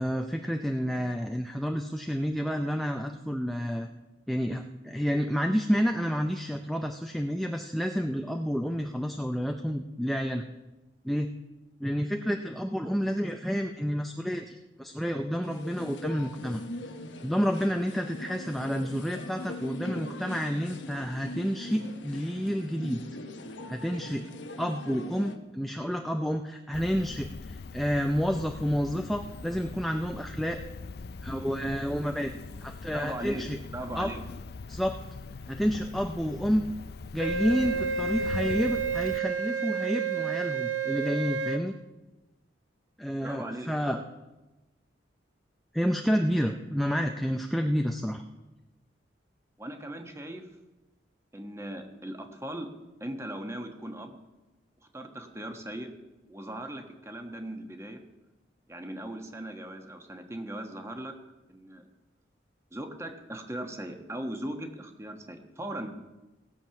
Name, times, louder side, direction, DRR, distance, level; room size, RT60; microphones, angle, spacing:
voice 1, 0.0-3.9 4.3-10.4 11.0-11.3 11.8-16.6 17.2-23.0 23.7-24.2 24.6-30.6 31.2-32.3 32.6-33.6 34.0-34.1 34.7-35.0 35.5-36.6 37.1-41.7 43.0-44.0 45.7-48.2, equal, ahead, 4 dB, 0.5 m, -29 dB
sound 1, 15.4-25.4, left 1 dB, 85° left, 1.2 m, -41 dB
Cricket, 26.7-39.2, left 4 dB, 55° left, 0.4 m, -41 dB
voice 2, 32.9-33.4 33.7-34.2 43.2-43.7 49.6-50.5 51.3-52.7 53.0-54.2 54.9-55.9 56.3-58.0 58.7-61.1 61.5-61.9 62.7-65.9, right 1 dB, 15° right, 5 dB, 1.2 m, -38 dB
Wind instrument woodwind instrument, 37.2-41.6, right 5 dB, 85° right, 0.9 m, -30 dB
18.0 x 7.5 x 5.8 m, 1.1 s
head